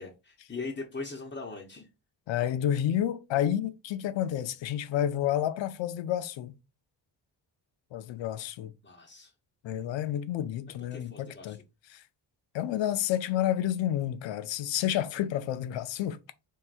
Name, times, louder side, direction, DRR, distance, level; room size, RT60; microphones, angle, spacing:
voice 1, 0.0-1.9 8.8-9.3 10.9-11.6, left 3 dB, 25° left, 0.8 m, -40 dB
voice 2, 2.3-6.5 7.9-8.7 9.6-11.6 11.9-12.0 12.5-16.2, left 11 dB, 85° left, 0.6 m, -30 dB
4.7 x 3.4 x 2.5 m
cardioid pair, 105°, 44 cm